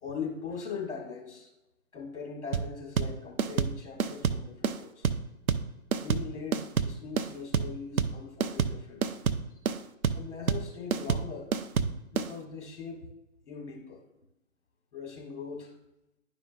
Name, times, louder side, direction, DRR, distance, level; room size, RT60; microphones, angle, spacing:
voice 1, 0.0-1.5 1.9-5.1 6.0-9.1 10.1-13.0 13.4-14.0 14.9-15.7, left 5 dB, 50° left, 0 dB, 1.8 m, -40 dB
sound 1, 2.5-12.3, right 6 dB, 80° right, 0.6 m, -28 dB
11.0 x 5.1 x 2.3 m, 0.92 s
figure-of-eight pair, 140°, 43 cm